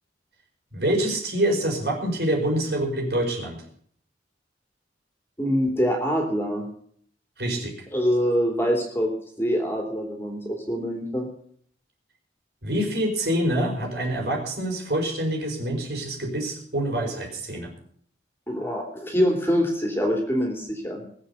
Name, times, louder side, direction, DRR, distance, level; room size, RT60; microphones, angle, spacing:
voice 1, 0.7-3.6 7.4-7.7 12.6-17.7, right 1 dB, 65° right, 1 dB, 4.9 m, -26 dB
voice 2, 5.4-6.7 7.9-9.1 9.4-11.3 18.5-21.0, equal, 15° left, 1 dB, 2.9 m, -24 dB
20.0 x 8.0 x 6.9 m, 0.62 s
head